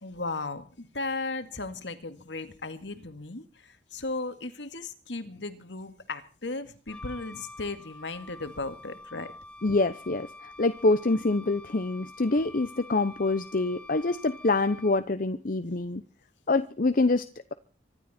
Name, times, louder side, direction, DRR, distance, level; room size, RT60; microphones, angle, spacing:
voice 1, 0.0-9.3, left 3 dB, 65° left, 2.2 m, -36 dB
Wind instrument woodwind instrument, 6.9-15.2, left 2 dB, 5° left, 1.9 m, -48 dB
voice 2, 9.6-16.0 16.5-17.5, left 2 dB, 45° left, 0.8 m, -26 dB
25.0 x 12.5 x 4.4 m
head